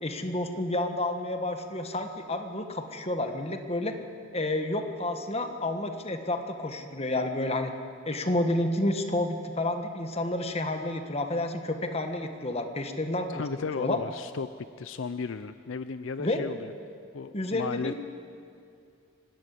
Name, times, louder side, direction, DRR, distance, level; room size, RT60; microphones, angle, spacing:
voice 1, 0.0-3.9 4.3-7.7 8.1-13.4 13.8-14.0 16.2-16.5 17.3-17.9, left 1 dB, 30° left, 6 dB, 1.4 m, -30 dB
voice 2, 13.3-16.7 17.1-17.9, left 5 dB, 65° left, 12 dB, 0.5 m, -35 dB
25.5 x 12.0 x 10.0 m, 2.4 s
head